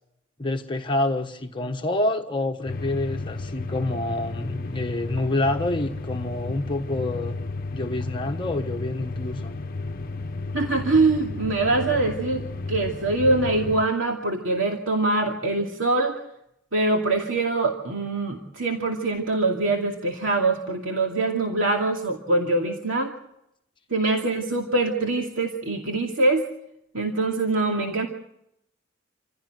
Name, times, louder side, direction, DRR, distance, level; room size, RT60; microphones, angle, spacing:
voice 1, 0.4-7.4 7.7-9.5, left 2 dB, 25° left, 3 dB, 1.2 m, -27 dB
sound 1, 2.7-13.8, left 3 dB, 50° left, 0.9 m, -33 dB
voice 2, 10.5-12.4 12.7-16.2 16.7-23.1 23.9-26.4 26.9-28.1, right 2 dB, 80° right, 1 dB, 2.5 m, -23 dB
27.5 x 16.0 x 7.8 m, 0.80 s
head